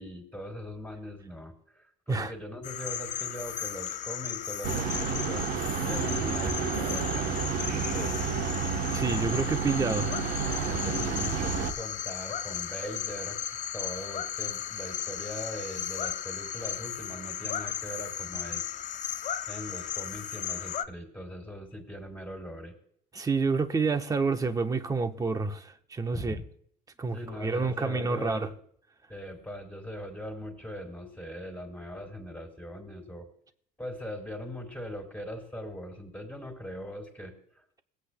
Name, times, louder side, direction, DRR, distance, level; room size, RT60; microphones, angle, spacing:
voice 1, 0.0-5.5 5.8-7.3 7.9-8.4 10.7-13.4 13.7-18.8 19.5-22.7 26.1-26.5 27.1-28.6 29.1-33.3 33.8-37.3, equal, 10° left, 2.4 m, -40 dB
sound 1, 2.6-20.8, left 10 dB, 45° left, 0.6 m, -36 dB
sound 2, 4.6-11.7, right 6 dB, 60° right, 1.0 m, -30 dB
voice 2, 8.9-10.2 23.1-26.4 27.0-28.5, right 4 dB, 20° right, 1.0 m, -28 dB
22.5 x 8.4 x 2.2 m
cardioid pair, 120°, 18 cm